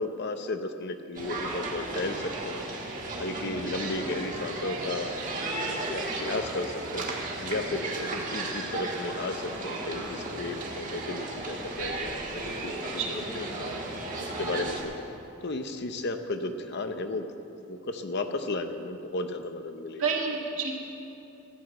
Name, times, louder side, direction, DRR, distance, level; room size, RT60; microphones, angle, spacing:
voice 1, 0.0-2.7 3.2-5.1 5.6-12.7 13.1-13.8 14.2-14.9 15.4-17.3 17.7-20.0, left 2 dB, 50° left, 8 dB, 0.6 m, -34 dB
sound 1, 1.1-14.8, right 2 dB, 35° right, 1.5 m, -34 dB
voice 2, 13.0-13.3 20.0-20.7, right 5 dB, 65° right, -1 dB, 1.8 m, -30 dB
14.5 x 6.9 x 7.7 m, 2.8 s
head